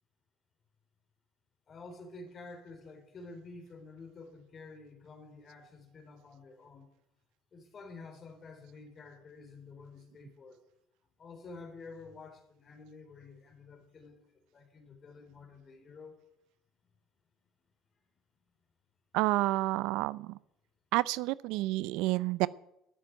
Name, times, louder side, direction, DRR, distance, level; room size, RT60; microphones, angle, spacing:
voice 1, 1.7-6.9 7.5-10.6 11.2-14.2 14.5-16.2, left 3 dB, 40° left, 6 dB, 3.8 m, -50 dB
voice 2, 19.1-20.4 20.9-22.5, right 18 dB, 80° right, 19 dB, 0.5 m, -29 dB
13.0 x 8.4 x 9.5 m, 0.81 s
supercardioid pair, 100°, 0 cm